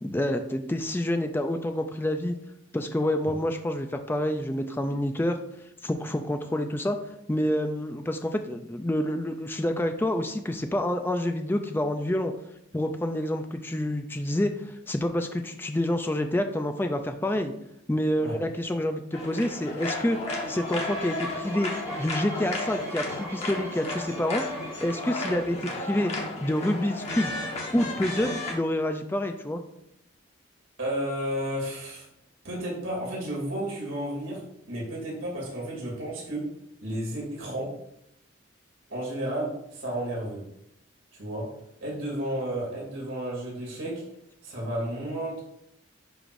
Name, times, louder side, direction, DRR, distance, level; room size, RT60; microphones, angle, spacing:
voice 1, 0.0-2.4 2.7-5.4 5.8-7.0 7.3-12.3 12.7-17.5 17.9-20.2 20.5-21.7 22.0-24.4 24.8-26.1 26.4-27.3 27.7-29.6, left 1 dB, 10° left, 6 dB, 0.4 m, -28 dB
sound 1, 19.1-28.5, left 2 dB, 30° left, 1.3 m, -34 dB
sound 2, 20.4-25.6, right 2 dB, 10° right, 2.2 m, -43 dB
voice 2, 30.8-32.1 32.4-34.4 34.7-36.4 36.8-37.7 38.9-40.4 41.2-41.4 41.8-44.0 44.4-45.4, right 1 dB, 75° right, -4 dB, 2.8 m, -32 dB
11.0 x 4.9 x 2.6 m, 0.77 s
head